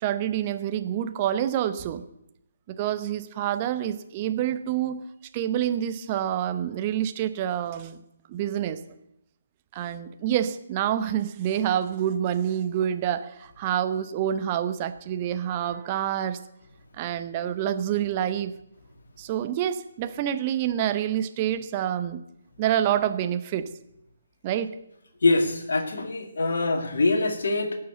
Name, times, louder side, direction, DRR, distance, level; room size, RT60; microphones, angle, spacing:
voice 1, 0.0-2.0 2.7-5.0 5.3-8.0 8.3-8.8 9.7-16.4 17.0-18.5 19.2-22.2 22.6-23.7 24.4-24.7, right 10 dB, 25° right, 9 dB, 0.9 m, -27 dB
voice 2, 25.2-27.8, left 3 dB, 55° left, 5 dB, 2.2 m, -24 dB
17.5 x 6.9 x 8.1 m, 0.82 s
figure-of-eight pair, 140°, 0 cm